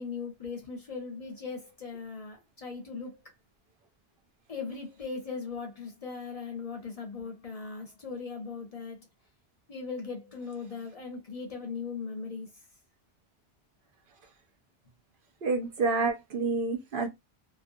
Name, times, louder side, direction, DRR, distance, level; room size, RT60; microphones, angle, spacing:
voice 1, 0.0-3.3 4.5-9.1 9.7-12.5, left 5 dB, 40° left, 0.6 m, -39 dB
voice 2, 15.4-17.1, right 3 dB, 65° right, 0.7 m, -28 dB
2.4 x 2.2 x 2.5 m
omnidirectional pair, 1.1 m